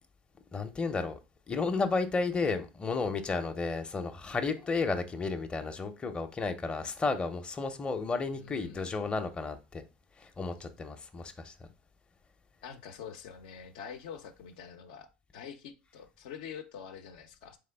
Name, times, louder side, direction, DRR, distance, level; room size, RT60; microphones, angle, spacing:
voice 1, 0.5-1.2 1.5-9.8 10.2-11.5, left 4 dB, 20° left, 0.6 m, -32 dB
voice 2, 8.3-9.1 12.6-17.6, left 7 dB, 70° left, 0.6 m, -46 dB
3.7 x 3.4 x 3.4 m
hypercardioid pair, 90°, 5 cm